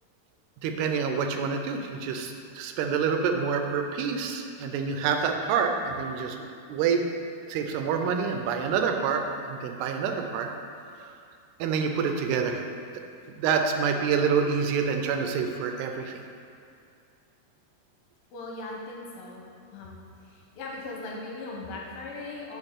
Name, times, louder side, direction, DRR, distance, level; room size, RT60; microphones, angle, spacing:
voice 1, 0.6-6.4 6.7-7.0 7.5-10.5 11.6-12.6 13.3-16.2, right 6 dB, 85° right, 4 dB, 2.7 m, -27 dB
voice 2, 11.9-12.3 18.3-19.4 19.7-20.0 20.2-22.6, left 2 dB, 75° left, -2 dB, 2.5 m, -39 dB
9.6 x 5.6 x 3.6 m, 2.4 s
omnidirectional pair, 4.6 m